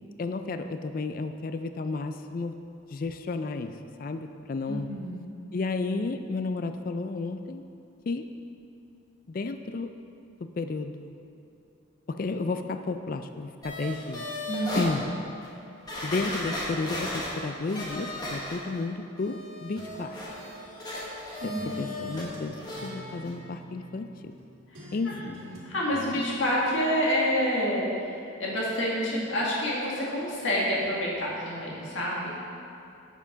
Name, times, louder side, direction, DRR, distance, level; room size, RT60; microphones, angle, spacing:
voice 1, 0.2-2.5 2.9-3.7 4.0-4.9 5.5-7.6 8.1-8.3 9.3-9.9 10.4-11.1 12.1-14.3 14.7-15.0 16.0-20.2 21.4-22.6 22.8-24.3 24.9-25.4, left 3 dB, 45° left, 8 dB, 0.3 m, -32 dB
voice 2, 4.7-5.2 14.5-15.0 21.4-21.8 24.7-24.9 25.7-32.3, equal, 75° left, -5 dB, 1.9 m, -28 dB
sound 1, 13.6-14.9 15.4-15.5 15.9-18.8 19.2-22.3 22.5-22.9 23.2-23.3, left 1 dB, 20° left, 1.3 m, -36 dB
sound 2, 19.8-21.2 21.6-24.4 24.7-26.2, right 1 dB, 90° right, 1.8 m, -46 dB
7.2 x 6.9 x 5.1 m, 2.6 s
head